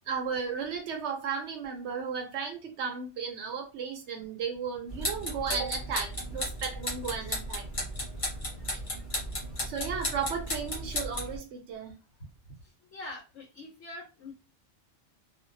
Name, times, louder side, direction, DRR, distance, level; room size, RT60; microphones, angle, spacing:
voice 1, 0.1-7.7 9.7-11.9, right 6 dB, 70° right, 0.9 m, -34 dB
sound 1, 4.9-11.4, left 1 dB, 30° left, 0.9 m, -35 dB
voice 2, 12.9-14.3, left 2 dB, 70° left, 1.2 m, -44 dB
2.5 x 2.2 x 2.6 m
omnidirectional pair, 1.3 m